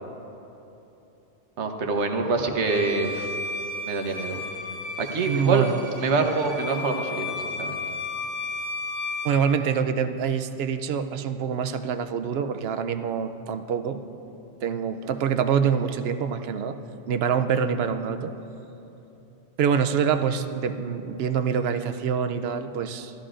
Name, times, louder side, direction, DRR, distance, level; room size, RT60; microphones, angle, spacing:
voice 1, 1.6-3.3 3.9-4.4 5.0-5.7 6.0-7.8, right 3 dB, 90° right, 4 dB, 1.2 m, -25 dB
Bowed string instrument, 2.6-9.4, left 2 dB, 45° left, 2.5 m, -34 dB
voice 2, 5.3-5.8 9.2-14.0 14.6-16.8 17.1-18.3 19.6-23.1, right 7 dB, 70° right, 8 dB, 0.8 m, -25 dB
16.0 x 12.5 x 2.5 m, 3.0 s
omnidirectional pair, 1.1 m